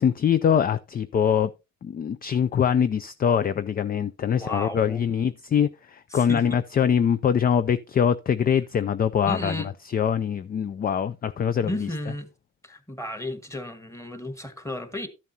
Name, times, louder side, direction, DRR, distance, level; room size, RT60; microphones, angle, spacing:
voice 1, 0.0-1.5 1.8-9.6 9.9-11.9, left 8 dB, 30° left, 0.4 m, -23 dB
voice 2, 4.3-5.0 6.1-6.5 9.2-9.7 11.6-12.3 12.6-15.1, left 1 dB, 10° left, 1.5 m, -33 dB
12.5 x 7.3 x 2.8 m
cardioid pair, 90°, 30 cm